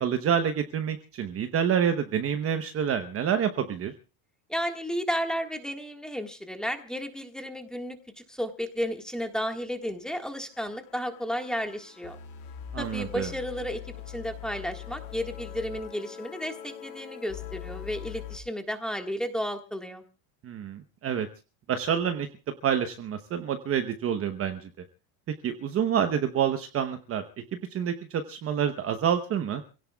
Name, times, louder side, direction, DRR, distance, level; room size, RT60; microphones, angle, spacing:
voice 1, 0.0-3.9 12.7-13.3 20.4-21.3 21.7-22.3 22.6-24.6 25.4-27.2 27.7-29.6, right 8 dB, 30° right, 7 dB, 1.0 m, -27 dB
voice 2, 4.5-8.0 8.3-12.2 12.8-13.8 14.1-20.0, equal, ahead, 5 dB, 1.6 m, -33 dB
sound 1, 9.8-9.9 10.2-10.3 10.5-18.4, left 10 dB, 65° left, 2.6 m, -42 dB
29.5 x 17.0 x 2.3 m, 0.32 s
supercardioid pair, 135°, 43 cm